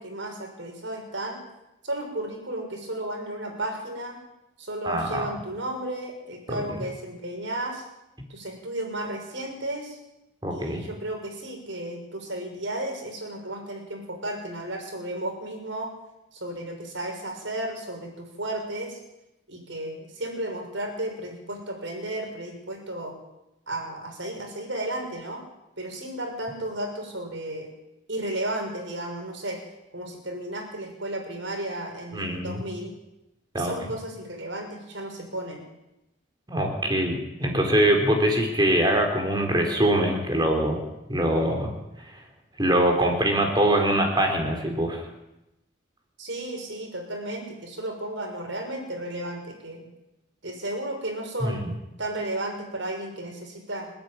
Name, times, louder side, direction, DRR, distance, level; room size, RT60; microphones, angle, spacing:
voice 1, 0.0-1.4 1.8-4.2 4.6-7.8 8.3-10.0 10.5-15.9 16.3-19.0 19.5-23.1 23.7-25.4 25.8-27.7 28.1-29.6 29.9-32.9 33.5-35.6 46.2-49.9 50.4-51.6 52.0-53.9, right 1 dB, 70° right, 3 dB, 6.2 m, -33 dB
voice 2, 4.8-5.3 6.5-6.8 10.4-10.8 32.1-32.6 33.5-33.7 36.5-40.8 41.1-41.7 42.6-45.1 51.4-51.7, right 1 dB, 20° right, 3 dB, 4.1 m, -23 dB
29.5 x 10.5 x 9.4 m, 0.92 s
head